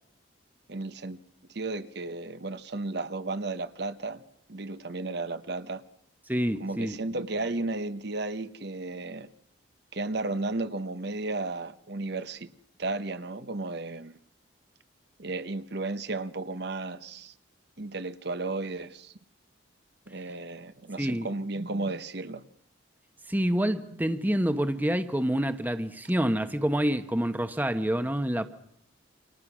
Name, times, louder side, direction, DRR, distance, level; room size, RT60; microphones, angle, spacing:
voice 1, 0.7-1.2 1.5-4.2 4.5-5.8 6.6-9.3 9.9-12.5 12.8-14.2 15.2-17.3 17.8-19.1 20.1-22.4, right 2 dB, 55° right, 1.0 m, -34 dB
voice 2, 6.3-7.0 21.0-21.3 23.3-28.5, equal, 10° right, 1.0 m, -27 dB
28.5 x 25.0 x 6.2 m
head